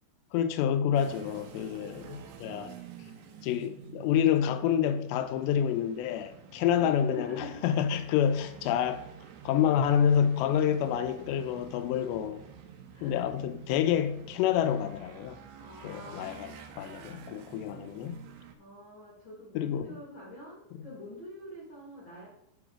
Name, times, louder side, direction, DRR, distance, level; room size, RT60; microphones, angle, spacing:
voice 1, 0.3-2.0 2.4-2.7 3.4-9.0 9.5-12.4 13.0-15.4 15.8-16.5 16.8-18.2 19.6-19.8, left 9 dB, 85° left, 2.5 m, -28 dB
sound 1, 0.9-18.6, right 8 dB, 85° right, 3.2 m, -49 dB
voice 2, 1.8-2.2 2.4-2.7 2.9-3.1 6.5-7.6 7.9-8.2 12.9-13.2 15.6-16.6 18.6-22.3, equal, 70° left, 1.1 m, -47 dB
11.5 x 3.9 x 4.8 m
omnidirectional pair, 5.5 m